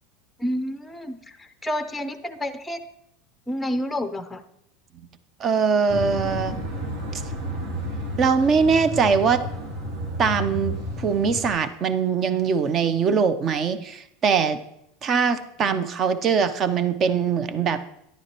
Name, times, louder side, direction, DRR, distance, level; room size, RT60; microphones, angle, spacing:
voice 1, 0.4-2.8 3.5-4.4, left 1 dB, 5° left, 9 dB, 0.6 m, -29 dB
voice 2, 5.4-6.7 8.2-9.4 10.2-14.6 15.0-17.9, right 6 dB, 35° right, 12 dB, 0.6 m, -22 dB
sound 1, 5.9-11.5, equal, 70° right, 2.0 m, -31 dB
10.5 x 9.7 x 3.0 m, 0.78 s
supercardioid pair, 130°, 0 cm